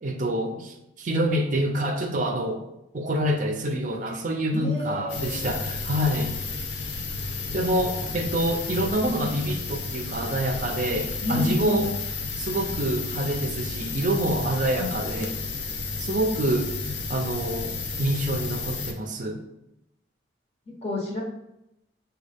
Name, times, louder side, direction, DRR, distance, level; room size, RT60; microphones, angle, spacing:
voice 1, 0.0-2.6 2.9-6.4 7.5-11.9 12.4-15.4 16.0-19.4, right 1 dB, 45° right, 4 dB, 0.5 m, -27 dB
voice 2, 4.5-5.5 8.0-8.1 11.2-11.9 14.8-15.0 20.7-21.2, left 1 dB, 35° left, -1 dB, 0.9 m, -30 dB
sound 1, 5.1-18.9, left 4 dB, 70° left, 0.6 m, -32 dB
6.2 x 2.3 x 3.4 m, 0.87 s
head